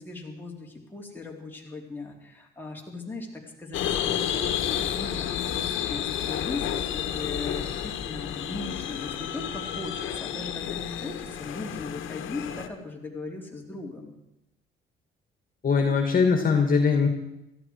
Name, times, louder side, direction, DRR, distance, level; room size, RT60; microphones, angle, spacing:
voice 1, 0.0-14.1, left 3 dB, 10° left, -2 dB, 3.7 m, -38 dB
sound 1, 3.7-12.7, left 10 dB, 80° left, 1.2 m, -31 dB
voice 2, 15.6-17.1, left 5 dB, 45° left, 4 dB, 2.2 m, -21 dB
17.5 x 14.0 x 4.8 m, 0.88 s
cardioid pair, 90°, 20 cm